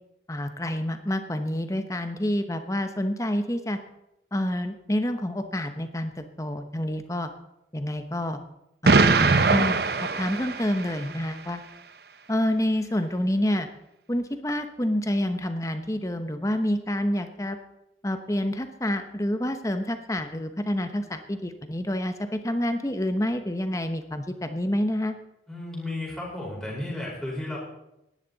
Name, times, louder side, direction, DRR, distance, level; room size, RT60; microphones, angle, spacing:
voice 1, 0.3-3.8 4.3-7.3 7.7-8.4 8.8-9.8 10.2-11.6 12.3-13.7 14.1-17.6 18.0-25.1, left 1 dB, 15° left, 8 dB, 1.0 m, -28 dB
Explosion, 8.8-11.0, right 3 dB, 55° right, 0.7 m, -21 dB
voice 2, 25.5-27.6, left 1 dB, ahead, -5 dB, 4.6 m, -33 dB
17.5 x 11.0 x 4.1 m, 0.86 s
head